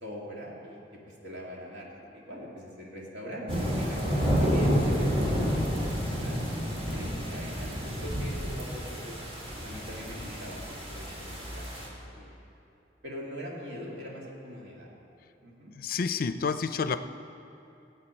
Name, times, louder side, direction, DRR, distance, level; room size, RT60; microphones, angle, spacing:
voice 1, 0.0-6.4 6.9-9.1 9.6-12.3 13.0-14.9 15.4-15.7, equal, 75° right, -3 dB, 2.2 m, -43 dB
sound 1, 3.5-11.9, equal, 30° right, 1.8 m, -30 dB
voice 2, 15.8-17.0, left 5 dB, 50° left, 11 dB, 0.4 m, -29 dB
17.5 x 8.1 x 4.4 m, 2.8 s
head